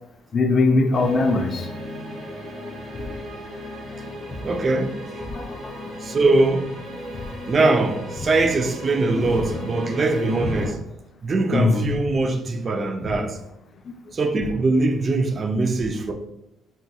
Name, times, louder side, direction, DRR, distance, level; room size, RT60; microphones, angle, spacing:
voice 1, 0.3-1.7 4.3-4.5 5.3-5.9 9.2-9.5 10.3-10.7 11.5-12.0 13.0-13.2 13.9-14.0, left 3 dB, 40° left, 0.4 m, -22 dB
sound 1, 0.9-10.7, equal, 60° right, 1.1 m, -36 dB
voice 2, 4.4-5.0 6.0-6.7 7.4-10.8 11.2-13.4 14.1-16.1, right 3 dB, 35° right, 0.3 m, -22 dB
3.6 x 2.7 x 2.3 m
cardioid pair, 120°, 0 cm